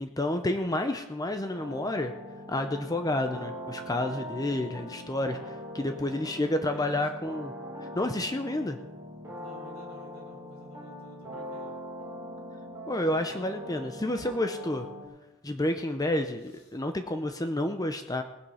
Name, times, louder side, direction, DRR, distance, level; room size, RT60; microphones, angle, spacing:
voice 1, 0.0-2.1 2.5-7.5 7.9-8.8 12.9-14.9 15.4-18.2, left 1 dB, 15° left, 7 dB, 0.6 m, -30 dB
sound 1, 1.5-15.1, equal, 15° right, 3.2 m, -42 dB
voice 2, 6.0-7.0 9.3-11.8 16.4-16.8, equal, 85° left, -2 dB, 6.0 m, -51 dB
18.5 x 7.8 x 5.7 m, 1.0 s
head